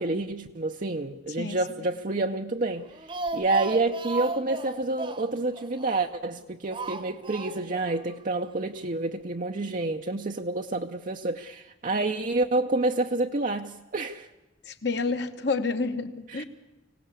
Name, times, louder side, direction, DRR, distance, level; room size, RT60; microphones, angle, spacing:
voice 1, 0.0-2.9 3.3-14.3 16.3-16.4, right 2 dB, 40° right, 0.7 m, -28 dB
voice 2, 1.4-1.9 14.6-16.4, left 3 dB, 55° left, 1.4 m, -29 dB
Speech, 2.8-6.3 6.7-8.1 8.5-8.6, right 3 dB, 25° right, 1.0 m, -35 dB
25.0 x 17.0 x 8.4 m
head